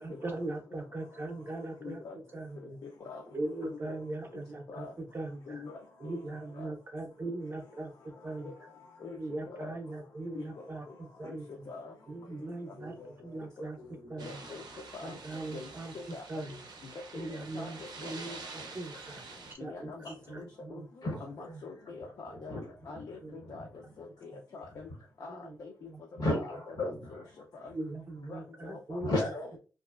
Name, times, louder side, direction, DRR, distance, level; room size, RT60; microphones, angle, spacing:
voice 1, 0.0-2.0 2.3-2.8 3.3-5.6 6.0-7.9 8.2-8.7 9.1-11.7 12.1-13.8 14.1-14.3 15.0-16.6 17.1-19.2 19.5-20.9 23.2-23.4 25.3-25.6 25.8-26.2 27.7-29.1, right 2 dB, 30° right, 0.5 m, -40 dB
voice 2, 1.8-2.2 3.1-3.2 3.6-4.0 4.7-4.9 5.5-6.2 6.6-6.7 8.4-8.5 9.0-9.2 9.5-9.7 10.3-11.0 11.2-11.4 11.7-11.9 14.2-14.6 14.9-15.2 15.5-15.7 16.1-16.5 16.8-17.3 17.5-17.7 18.0-18.4 19.6-20.8 21.2-22.6 22.9-23.7 24.0-24.9 25.2-25.7 26.3-26.6 26.8-27.2 27.6-27.8 28.3-29.1, left 4 dB, 55° left, 0.4 m, -45 dB
voice 3, 12.8-13.4 13.8-14.5 16.5-16.6 17.3-17.4 18.6-18.7 19.0-19.8 20.0-20.3 21.0-23.9 26.2-27.6 29.0-29.6, left 1 dB, 80° left, 1.2 m, -38 dB
sound 1, 14.2-19.5, right 3 dB, 85° right, 0.5 m, -47 dB
2.8 x 2.3 x 2.3 m
wide cardioid pair, 175°, 7 cm